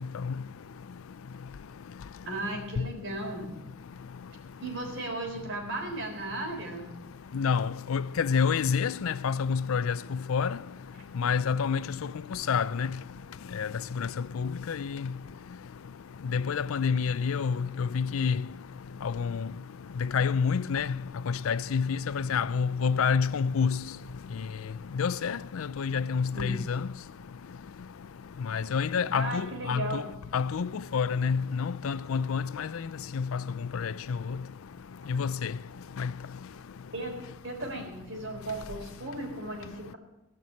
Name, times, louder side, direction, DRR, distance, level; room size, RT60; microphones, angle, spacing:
voice 1, 2.3-3.5 4.6-6.9 26.3-26.5 29.1-30.1 36.9-37.2 37.4-40.0, right 2 dB, 60° right, 3.7 m, -36 dB
voice 2, 7.3-9.9 10.3-10.6 11.2-11.8 12.5-12.9 13.5-13.7 14.0-14.1 14.3-15.1 16.3-18.4 19.0-19.5 20.0-21.0 21.3-23.8 25.0-26.8 28.5-30.0 30.3-32.7 33.1-33.4 33.7-34.2 35.1-35.5 36.0-36.1, left 6 dB, 75° left, 0.4 m, -28 dB
17.0 x 6.1 x 8.5 m
head